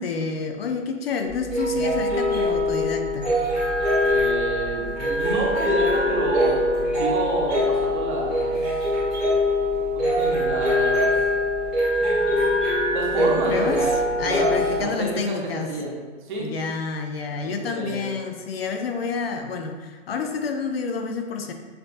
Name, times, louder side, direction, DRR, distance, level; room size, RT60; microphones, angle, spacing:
voice 1, 0.0-3.3 13.2-13.9 14.2-15.7 16.4-21.5, left 5 dB, 55° left, 5 dB, 0.4 m, -29 dB
sound 1, 1.3-14.8, left 1 dB, ahead, 0.5 m, -23 dB
voice 2, 4.0-6.6 7.0-8.5 9.8-11.1 12.9-13.9 14.2-16.0 16.2-16.5 17.4-18.1, right 2 dB, 40° right, -3 dB, 0.9 m, -29 dB
6.7 x 2.4 x 2.5 m, 1.5 s
hypercardioid pair, 170°, 37 cm